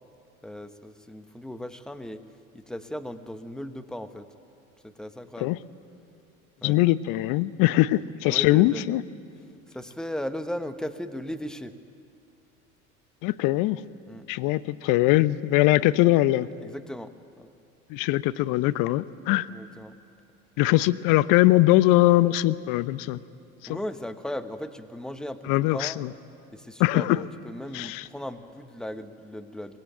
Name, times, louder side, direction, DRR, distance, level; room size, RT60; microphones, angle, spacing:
voice 1, 0.4-2.2 2.5-4.3 4.8-5.6 6.6-6.8 7.9-8.0 8.3-8.9 9.7-11.8 14.1-14.3 16.6-17.5 19.5-19.9 23.7-26.0 26.5-29.8, left 1 dB, ahead, 9 dB, 1.3 m, -37 dB
voice 2, 6.6-9.0 13.2-13.8 14.3-16.5 17.9-19.5 20.6-23.2 23.7-23.8 25.5-26.1 26.8-27.3 27.7-28.1, left 17 dB, 50° left, 16 dB, 0.9 m, -21 dB
24.5 x 20.0 x 9.2 m, 2.5 s
hypercardioid pair, 80°, 42 cm